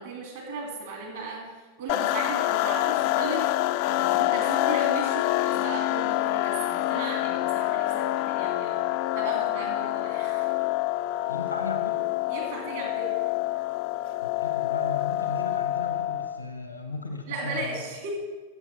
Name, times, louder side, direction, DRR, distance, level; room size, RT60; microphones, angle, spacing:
voice 1, 0.0-3.5 3.8-8.9 9.1-10.5 12.3-13.2 17.3-18.1, right 3 dB, 55° right, 0 dB, 2.5 m, -36 dB
sound 1, 1.9-16.4, left 15 dB, 45° left, 0.3 m, -27 dB
voice 2, 11.3-12.1 14.2-17.8, left 3 dB, 80° left, 6 dB, 0.9 m, -36 dB
15.5 x 7.2 x 4.2 m, 1.4 s
figure-of-eight pair, 90°, 0 cm